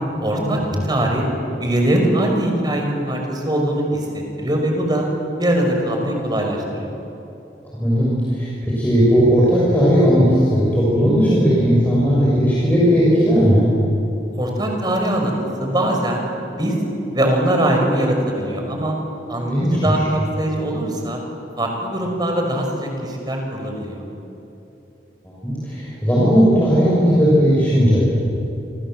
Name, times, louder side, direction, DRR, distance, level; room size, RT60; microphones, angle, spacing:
voice 1, 0.2-0.6 0.9-1.2 1.6-5.0 5.4-6.9 14.4-15.3 15.6-16.2 16.5-16.7 17.1-18.9 19.3-21.2 21.6-24.0, right 1 dB, 25° right, 2 dB, 5.7 m, -21 dB
voice 2, 7.7-13.7 19.5-20.0 25.4-28.0, equal, 10° left, -7 dB, 6.7 m, -16 dB
28.0 x 27.5 x 7.7 m, 2.9 s
head